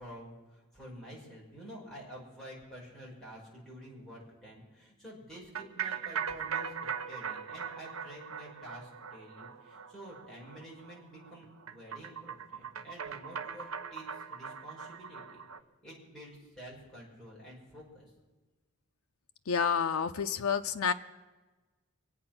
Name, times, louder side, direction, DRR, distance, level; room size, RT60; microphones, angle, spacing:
voice 1, 0.0-15.4 15.8-18.1, equal, ahead, -6 dB, 5.4 m, -49 dB
sound 1, 5.5-15.6, right 7 dB, 70° right, 0.8 m, -40 dB
voice 2, 19.5-20.9, left 6 dB, 75° left, 7 dB, 0.6 m, -29 dB
26.0 x 8.7 x 6.0 m, 1.2 s
head